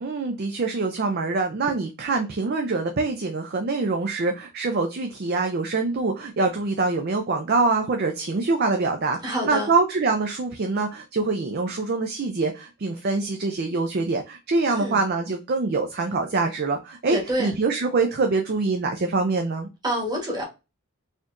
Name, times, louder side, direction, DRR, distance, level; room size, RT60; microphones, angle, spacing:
voice 1, 0.0-9.2 9.5-19.7, right 3 dB, 45° right, 0.4 m, -24 dB
voice 2, 9.2-9.7 14.7-15.0 17.1-17.5 19.8-20.4, equal, 20° right, 1.2 m, -27 dB
4.2 x 2.9 x 2.5 m
head